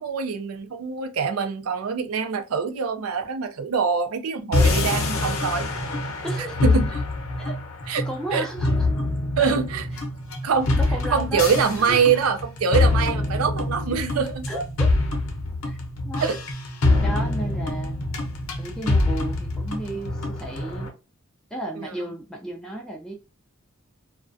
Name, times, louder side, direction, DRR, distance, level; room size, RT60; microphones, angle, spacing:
voice 1, 0.0-5.7 6.6-6.9 7.9-8.0 8.3-8.5 9.4-9.9 10.4-10.8 11.1-14.4 16.2-16.4 21.8-21.9, right 6 dB, 80° right, 0.4 m, -24 dB
sound 1, 4.5-20.9, left 2 dB, 70° left, 0.7 m, -25 dB
voice 2, 6.2-6.8 7.4-7.6 8.0-8.9 9.4-9.5 10.7-11.4 11.8-12.2 14.5-14.9 15.6-15.8 16.0-16.3 17.0-17.9 18.6-20.9 21.5-23.1, right 1 dB, 5° left, 0.3 m, -33 dB
2.3 x 2.1 x 2.5 m
head